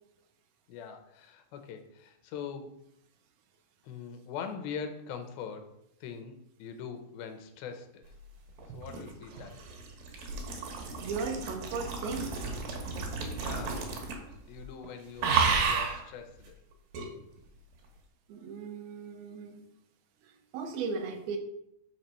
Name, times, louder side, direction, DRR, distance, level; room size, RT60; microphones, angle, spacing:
voice 1, 0.7-2.8 3.8-5.7 6.0-8.1 8.7-9.6 13.3-13.9 14.5-16.6, left 6 dB, 80° left, 7 dB, 2.7 m, -42 dB
sound 1, 8.6-14.3 14.6-14.9 15.2-16.0 16.9-17.1, right 5 dB, 70° right, 3.0 m, -32 dB
voice 2, 11.0-12.4 18.3-19.7 20.2-21.4, right 4 dB, 90° right, 4 dB, 2.8 m, -37 dB
6.6 x 4.3 x 6.6 m, 0.78 s
omnidirectional pair, 4.3 m